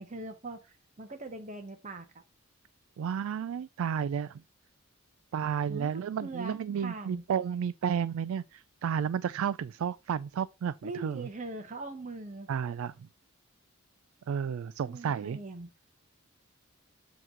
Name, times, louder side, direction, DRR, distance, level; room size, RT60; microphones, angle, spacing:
voice 1, 0.0-2.2 5.7-7.2 10.8-12.5 14.8-15.7, right 2 dB, 35° right, 0.9 m, -41 dB
voice 2, 3.0-4.4 5.3-11.3 12.5-13.1 14.3-15.4, right 7 dB, 70° right, 0.3 m, -32 dB
7.8 x 3.1 x 5.8 m
head